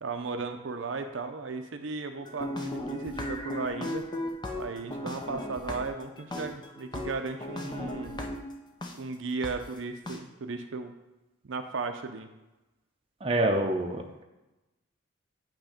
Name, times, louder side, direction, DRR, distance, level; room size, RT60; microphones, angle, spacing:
voice 1, 0.0-4.0 4.6-8.3 8.9-10.9 11.4-12.3, right 4 dB, 75° right, 7 dB, 0.5 m, -35 dB
sound 1, 2.2-8.9 9.4-9.5 10.1-10.2, left 1 dB, 20° left, 0.6 m, -36 dB
voice 2, 13.2-14.2, right 1 dB, 30° right, 2 dB, 0.6 m, -27 dB
9.0 x 3.1 x 5.0 m, 1.1 s
head